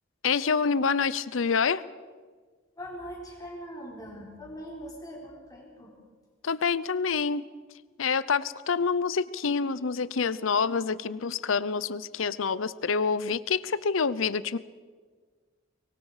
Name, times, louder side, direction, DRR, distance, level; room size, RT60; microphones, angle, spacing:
voice 1, 0.2-1.8 6.4-7.4 8.0-14.6, left 5 dB, 85° left, 17 dB, 0.7 m, -27 dB
voice 2, 2.8-5.9, equal, 20° left, -3 dB, 4.3 m, -41 dB
24.5 x 22.0 x 4.9 m, 1.5 s
head